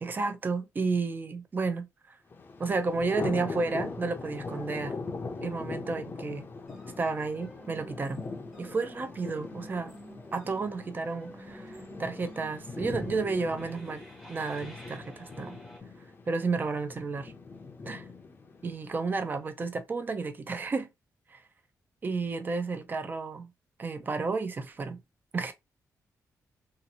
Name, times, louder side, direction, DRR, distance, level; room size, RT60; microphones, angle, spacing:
voice 1, 0.0-2.2 2.6-5.0 5.4-6.5 7.0-8.3 8.6-9.9 10.3-14.0 14.3-15.6 16.3-17.3 17.9-18.0 18.6-20.9 21.3-21.4 22.0-23.5 23.8-25.0 25.3-25.5, right 4 dB, 30° right, 0.5 m, -32 dB
Thunder, 2.3-19.3, left 4 dB, 30° left, 0.6 m, -41 dB
sound 1, 6.5-15.8, equal, 10° right, 0.9 m, -49 dB
2.8 x 2.5 x 2.7 m
wide cardioid pair, 140°, 6 cm